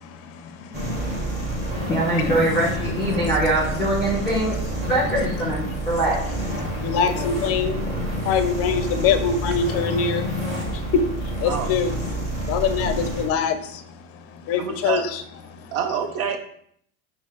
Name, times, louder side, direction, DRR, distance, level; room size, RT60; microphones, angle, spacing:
sound 1, 0.7-13.3, equal, 15° right, 1.4 m, -28 dB
voice 1, 1.9-4.6 4.9-6.2, right 1 dB, 5° left, -9 dB, 1.6 m, -23 dB
voice 2, 6.8-7.8 8.3-10.2 11.4-11.9 12.5-13.5 14.5-15.2, left 6 dB, 35° left, 10 dB, 0.5 m, -23 dB
voice 3, 14.6-15.1 15.7-16.4, right 7 dB, 90° right, 5 dB, 0.6 m, -26 dB
5.1 x 2.0 x 3.5 m, 0.65 s
hypercardioid pair, 100°, 42 cm